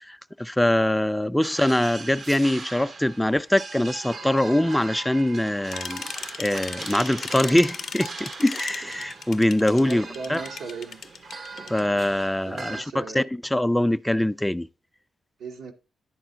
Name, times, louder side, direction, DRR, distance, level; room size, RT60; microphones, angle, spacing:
voice 1, 0.0-6.0 6.4-10.4 11.7-14.7, left 1 dB, 5° left, 0.3 m, -23 dB
sound 1, 1.4-12.8, right 3 dB, 55° right, 0.6 m, -40 dB
sound 2, 5.7-11.8, left 7 dB, 70° left, 0.4 m, -36 dB
voice 2, 9.8-11.0 12.5-13.2 15.4-15.7, right 5 dB, 85° right, 1.0 m, -37 dB
10.0 x 4.3 x 3.8 m
cardioid pair, 60°, 0 cm